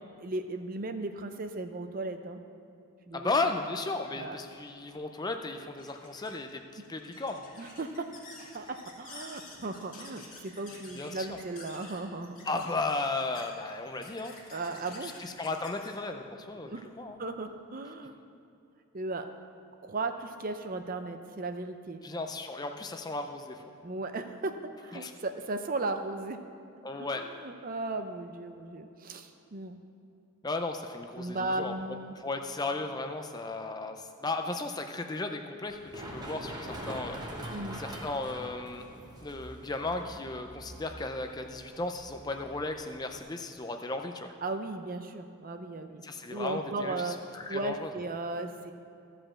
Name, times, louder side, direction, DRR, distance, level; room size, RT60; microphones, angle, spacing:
voice 1, 0.2-2.4 3.1-3.3 4.2-4.4 6.8-6.9 7.6-8.1 8.5-12.3 14.5-15.1 16.6-16.8 17.2-18.1 18.9-19.3 19.8-22.0 23.8-26.4 27.0-29.8 31.2-32.1 37.5-37.8 44.4-46.0 46.3-47.2 47.5-48.7, right 2 dB, 40° right, 7 dB, 0.5 m, -36 dB
voice 2, 3.1-7.4 11.0-11.4 12.5-14.3 15.0-17.2 22.0-23.6 24.9-25.1 26.8-27.2 30.4-31.7 32.2-38.8 39.2-44.3 46.0-47.9, left 3 dB, 20° left, 5 dB, 0.4 m, -35 dB
sound 1, 4.8-17.5, left 3 dB, 35° left, 1.9 m, -51 dB
Run, 35.6-43.2, right 1 dB, 20° right, 1.2 m, -43 dB
14.0 x 5.1 x 7.3 m, 2.6 s
head